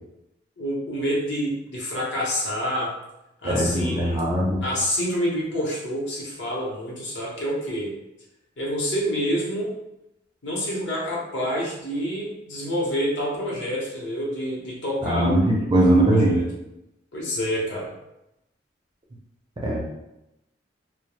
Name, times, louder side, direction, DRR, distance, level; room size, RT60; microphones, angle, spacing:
voice 1, 0.6-2.9 3.4-4.2 4.6-7.9 8.6-9.7 10.4-15.7 16.0-16.4 17.1-17.9, equal, 65° left, -4 dB, 0.8 m, -27 dB
voice 2, 3.4-4.6 15.0-16.4 19.6-19.8, right 1 dB, 25° right, -2 dB, 0.4 m, -20 dB
2.2 x 2.1 x 3.0 m, 0.88 s
head